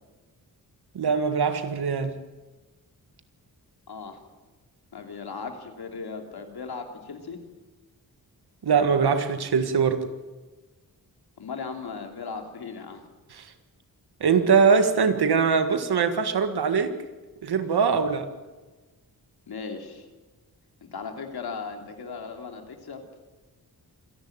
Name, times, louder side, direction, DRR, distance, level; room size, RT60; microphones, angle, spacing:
voice 1, 0.9-2.1 8.6-10.0 13.3-13.5 14.2-16.9 17.4-18.3, right 5 dB, 85° right, 8 dB, 1.9 m, -22 dB
voice 2, 3.9-4.2 4.9-7.4 11.4-13.0 19.5-20.1 20.9-23.0, left 5 dB, 80° left, 4 dB, 3.0 m, -37 dB
26.5 x 11.0 x 9.0 m, 1.2 s
wide cardioid pair, 100°, 38 cm